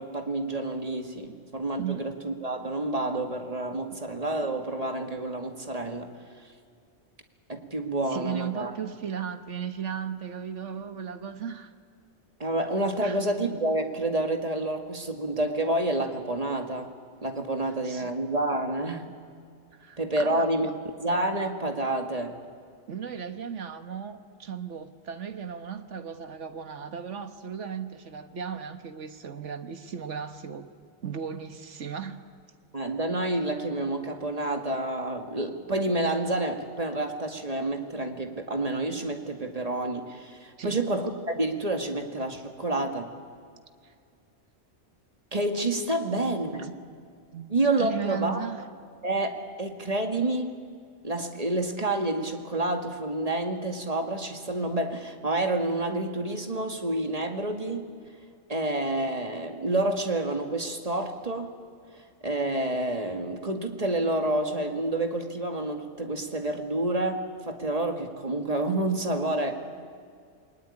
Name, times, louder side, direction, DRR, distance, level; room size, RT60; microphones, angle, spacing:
voice 1, 0.0-6.1 7.5-8.7 12.4-16.9 17.2-19.1 20.0-20.7 21.0-22.4 32.7-43.1 45.3-46.7 47.5-48.5 49.0-50.5 51.0-57.9 58.5-61.6 62.2-69.6, right 2 dB, 30° right, 5 dB, 2.0 m, -29 dB
voice 2, 1.8-2.1 3.9-4.0 8.1-11.7 13.0-13.2 17.6-18.1 19.7-20.7 22.9-30.7 31.0-32.4 40.6-40.8 43.8-43.9 46.5-46.7 47.3-47.5 47.8-48.6, right 7 dB, 70° right, 9 dB, 1.6 m, -36 dB
28.0 x 20.0 x 10.0 m, 2.2 s
omnidirectional pair, 1.3 m